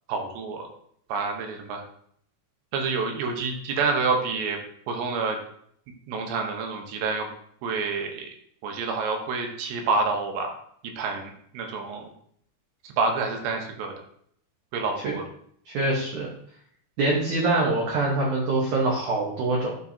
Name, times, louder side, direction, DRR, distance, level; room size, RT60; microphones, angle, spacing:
voice 1, 0.1-0.7 1.1-1.8 2.7-4.6 4.9-5.4 6.1-7.3 7.6-8.3 8.6-10.6 11.0-12.1 12.8-13.9 14.7-15.3, right 4 dB, 85° right, 3 dB, 3.4 m, -28 dB
voice 2, 15.7-16.3 17.0-19.8, right 2 dB, 65° right, -3 dB, 2.1 m, -24 dB
13.0 x 4.7 x 2.8 m, 0.66 s
omnidirectional pair, 4.9 m